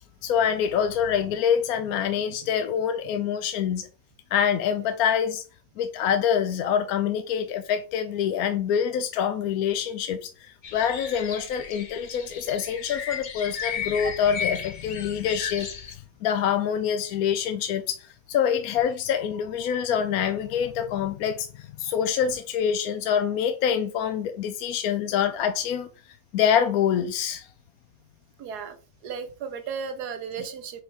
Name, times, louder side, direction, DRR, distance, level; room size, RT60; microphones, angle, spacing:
voice 1, 0.2-3.9 4.3-5.4 5.8-25.9 26.3-27.5, left 8 dB, 75° left, 1.0 m, -26 dB
sound 1, 10.6-15.9, left 7 dB, 50° left, 0.5 m, -35 dB
voice 2, 28.4-28.8 29.0-30.8, right 6 dB, 80° right, 1.4 m, -35 dB
4.8 x 4.3 x 4.5 m
omnidirectional pair, 1.7 m